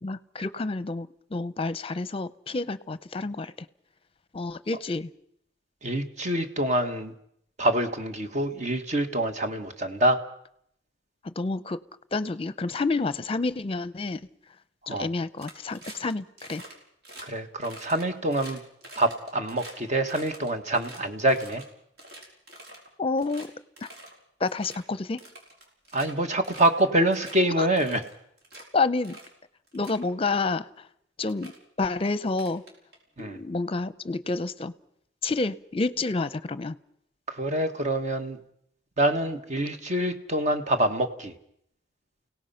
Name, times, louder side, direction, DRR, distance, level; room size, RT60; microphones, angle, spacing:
voice 1, 0.0-3.7 4.3-5.1 11.2-11.8 12.1-14.3 14.9-16.6 23.0-23.5 23.8-23.9 24.4-25.2 27.6-27.7 28.7-29.2 29.7-30.7 31.2-31.5 31.8-32.6 33.2-34.7 35.2-36.8, left 3 dB, 30° left, 15 dB, 0.7 m, -29 dB
voice 2, 5.8-7.1 7.6-10.2 14.9-15.1 17.2-18.6 19.0-21.6 25.9-28.0 33.2-33.4 37.3-38.4 39.0-41.3, right 1 dB, 40° right, 7 dB, 1.7 m, -26 dB
sound 1, 15.4-16.1 16.4-16.7 17.0-17.2 17.6-19.7 20.0-21.6 22.0-22.9 23.2-23.5 23.8-24.1 24.4-24.8 25.2-26.1 26.4-26.8 27.1-27.4 27.8-28.6 29.0-29.3 29.7-30.0 30.9-31.0 31.3-31.6 32.3-33.2, right 1 dB, 60° right, 5.5 m, -46 dB
29.0 x 17.5 x 5.8 m, 0.72 s
head